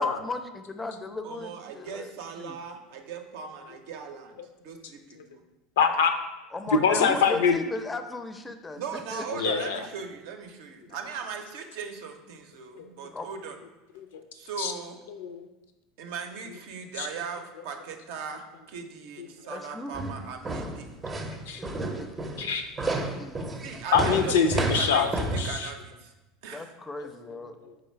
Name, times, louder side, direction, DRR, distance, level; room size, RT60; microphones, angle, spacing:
voice 1, 0.0-2.6 6.5-9.7 13.1-13.3 19.5-20.1 21.5-21.7 22.0-22.1 22.9-23.8 26.5-27.6, left 2 dB, 15° left, 8 dB, 0.4 m, -36 dB
voice 2, 1.2-4.4 4.6-5.4 8.7-13.6 14.3-15.0 16.0-20.9 23.6-26.1 26.4-26.7, right 6 dB, 70° right, 5 dB, 0.5 m, -39 dB
voice 3, 5.8-6.1 6.8-7.6 9.3-9.8 12.8-12.9 14.0-14.1 14.6-14.7 15.1-15.5 17.0-17.1 19.2-19.3 21.5-21.6 22.4-22.7 23.9-25.7, left 6 dB, 80° left, 7 dB, 0.4 m, -24 dB
sound 1, 19.9-25.5, right 2 dB, 25° right, 0.6 m, -31 dB
3.9 x 3.2 x 4.3 m, 1.0 s
hypercardioid pair, 90°, 0 cm